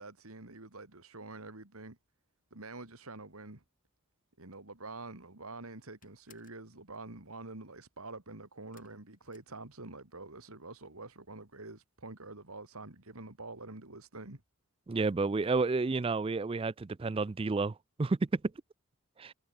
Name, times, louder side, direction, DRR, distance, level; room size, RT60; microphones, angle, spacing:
voice 1, 0.0-2.0 2.5-3.6 4.4-14.4, right 2 dB, 80° right, 2.9 m, -47 dB
sound 1, 5.0-5.4 5.7-6.7 8.7-10.2 10.5-11.1 11.4-11.5 11.9-12.0, left 9 dB, 40° left, 7.4 m, -66 dB
voice 2, 14.9-18.4 19.2-19.3, right 3 dB, 25° right, 0.4 m, -31 dB
head